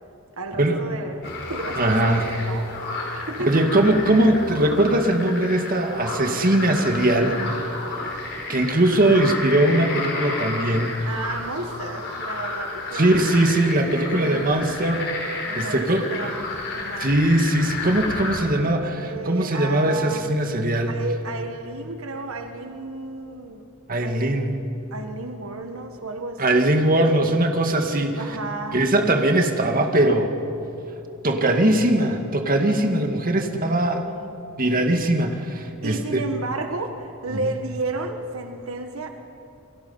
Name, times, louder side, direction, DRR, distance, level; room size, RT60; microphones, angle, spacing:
voice 1, 0.4-2.7 3.0-3.7 11.0-13.5 14.1-14.4 15.5-17.1 19.0-20.4 20.9-23.6 24.0-24.6 24.9-26.7 28.1-28.9 34.0-34.4 35.8-39.1, right 3 dB, 75° right, 5 dB, 1.4 m, -33 dB
sound 1, 1.2-18.4, left 3 dB, 55° left, 4.9 m, -32 dB
voice 2, 1.8-2.2 3.5-7.4 8.5-11.0 12.9-16.0 17.0-21.0 23.9-24.6 26.4-28.2 28.7-30.3 31.2-34.1 34.6-36.2, right 1 dB, 45° right, 4 dB, 2.0 m, -20 dB
29.5 x 22.5 x 5.6 m, 3.0 s
head